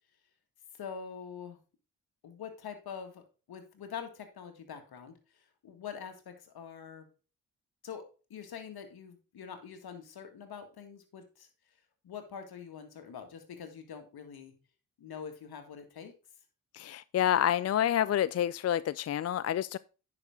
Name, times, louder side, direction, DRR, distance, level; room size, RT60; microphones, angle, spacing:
voice 1, 0.7-1.6 2.2-7.1 7.8-8.1 8.3-11.5 12.0-14.5 15.0-16.1, left 7 dB, 70° left, 2.0 m, -45 dB
voice 2, 16.7-19.8, left 10 dB, 40° left, 0.4 m, -28 dB
9.9 x 6.0 x 3.6 m
hypercardioid pair, 40°, 39 cm